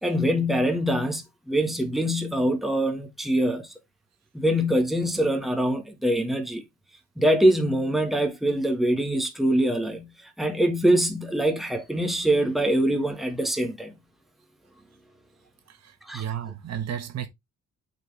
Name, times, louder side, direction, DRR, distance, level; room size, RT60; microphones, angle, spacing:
voice 1, 0.0-3.7 4.3-6.6 7.2-10.1 10.4-13.9 16.0-16.2, right 1 dB, ahead, 1.4 m, -24 dB
voice 2, 15.7-17.3, right 9 dB, 60° right, 1.4 m, -33 dB
7.7 x 4.3 x 3.3 m
cardioid pair, 90°, 30 cm